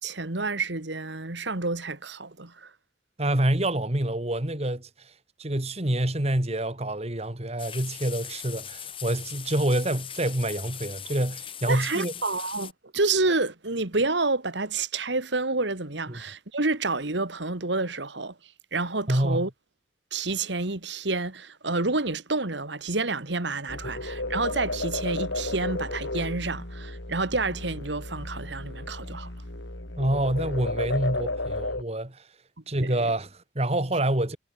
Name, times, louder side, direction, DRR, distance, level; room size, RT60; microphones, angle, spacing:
voice 1, 0.0-2.7 11.7-19.5 20.1-29.3 32.8-32.9, right 3 dB, 65° right, 2.1 m, -29 dB
voice 2, 3.2-5.1 5.4-12.1 16.1-16.2 19.1-19.5 30.0-32.3 32.7-34.4, right 1 dB, 35° right, 2.2 m, -27 dB
sound 1, 7.6-12.7, left 9 dB, 30° left, 2.0 m, -40 dB
sound 2, 23.7-31.8, left 2 dB, 80° left, 4.7 m, -33 dB
head